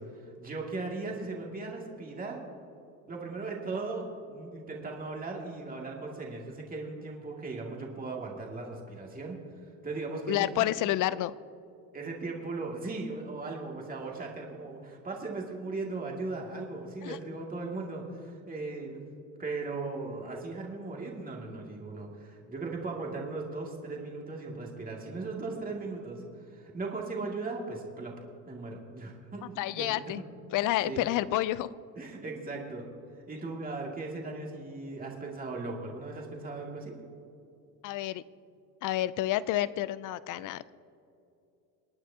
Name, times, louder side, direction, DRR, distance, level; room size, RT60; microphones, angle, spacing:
voice 1, 0.2-2.4 3.1-9.4 9.8-10.7 11.9-19.0 19.4-28.1 28.5-30.0 30.8-31.0 32.0-32.9 33.3-36.9, right 3 dB, 20° right, -1 dB, 2.3 m, -38 dB
voice 2, 10.3-11.3 17.0-17.2 29.6-30.2 30.5-31.7 37.8-38.2 38.8-40.6, left 14 dB, 55° left, 18 dB, 0.5 m, -29 dB
25.0 x 9.3 x 2.8 m, 2.7 s
supercardioid pair, 95°, 39 cm